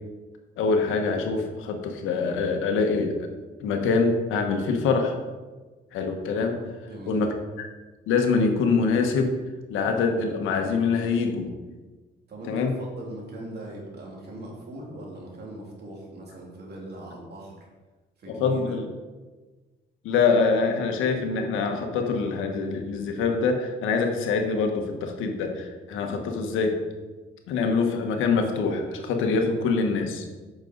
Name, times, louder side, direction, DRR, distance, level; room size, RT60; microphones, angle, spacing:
voice 1, 0.6-3.3 3.6-5.1 5.9-6.6 7.1-7.7 8.1-9.3 9.7-11.5 12.5-12.7 18.3-18.8 20.0-26.8 27.5-30.2, left 4 dB, 90° left, 4 dB, 1.3 m, -24 dB
voice 2, 6.8-7.3 12.3-17.6 18.2-18.8, right 1 dB, 55° right, -2 dB, 3.0 m, -40 dB
9.1 x 6.4 x 4.0 m, 1.3 s
cardioid pair, 90°, 20 cm